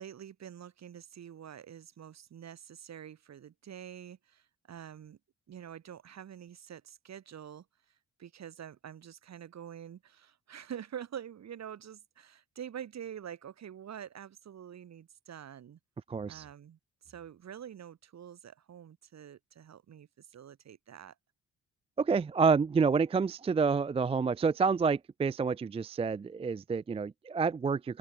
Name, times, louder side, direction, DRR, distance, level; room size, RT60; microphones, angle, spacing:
voice 1, 0.0-5.2 5.5-15.8 16.3-21.2, right 9 dB, 60° right, 6.9 m, -46 dB
voice 2, 16.1-16.4 22.0-28.0, right 5 dB, 20° right, 0.4 m, -28 dB
open air
supercardioid pair, 60°, 30 cm